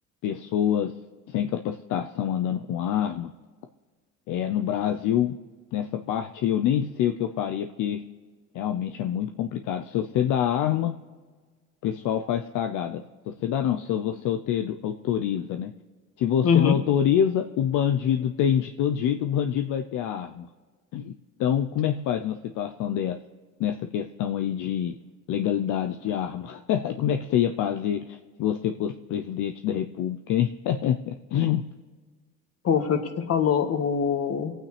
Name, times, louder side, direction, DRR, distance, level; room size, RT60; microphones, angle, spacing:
voice 1, 0.2-0.9 1.3-3.3 4.3-5.4 5.7-8.0 8.5-11.0 11.8-15.7 16.2-20.5 20.9-21.1 21.4-23.2 23.6-24.9 25.3-31.6, left 9 dB, 70° left, 7 dB, 0.7 m, -26 dB
voice 2, 16.4-16.8 32.6-34.5, left 7 dB, 50° left, 7 dB, 1.6 m, -23 dB
24.0 x 9.2 x 3.3 m, 1.5 s
cardioid pair, 105°, 32 cm